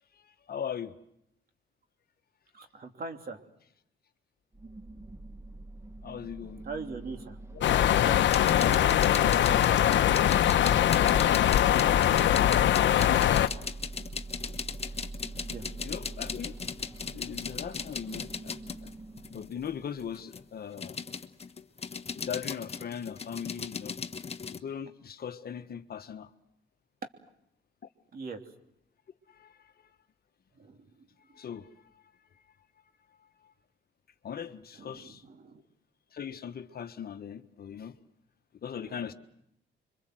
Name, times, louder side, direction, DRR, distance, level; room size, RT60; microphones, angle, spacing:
voice 1, 0.2-0.9 6.0-6.6 7.5-7.6 7.9-8.0 13.0-13.3 14.9-15.0 15.8-16.6 17.1-18.6 18.8-18.9 19.3-21.0 22.1-24.0 24.5-26.3 29.3-29.7 31.3-31.7 34.2-35.2 36.1-37.9 38.6-39.1, left 8 dB, 50° left, 1.4 m, -39 dB
voice 2, 2.5-3.4 6.6-7.4 8.0-9.0 15.5-15.6 28.1-28.4 30.6-30.8 34.8-35.6 38.9-39.1, right 4 dB, 50° right, 3.0 m, -41 dB
sound 1, 4.5-20.5, right 2 dB, 15° right, 1.5 m, -45 dB
sound 2, 7.6-13.5, left 11 dB, 70° left, 0.9 m, -22 dB
sound 3, 8.3-19.5 20.0-24.6, left 5 dB, 30° left, 1.3 m, -38 dB
26.5 x 24.0 x 7.8 m
cardioid pair, 90°, 20 cm